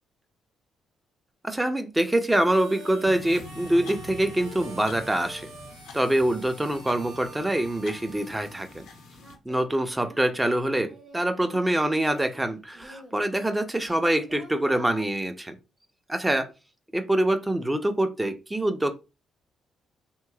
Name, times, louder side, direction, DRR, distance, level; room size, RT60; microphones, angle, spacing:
voice 1, 1.4-5.5 5.9-8.9 9.5-15.6 16.1-16.5 16.9-18.9, right 1 dB, 10° right, 0.5 m, -25 dB
Harmonica, 2.3-9.2, right 3 dB, 80° right, 0.7 m, -46 dB
sound 1, 3.1-9.3, left 4 dB, 85° left, 0.7 m, -45 dB
Singing, 8.6-8.7 9.2-12.4 12.7-15.0, right 1 dB, 45° right, 1.3 m, -47 dB
3.1 x 2.9 x 2.3 m
cardioid pair, 90°, 0 cm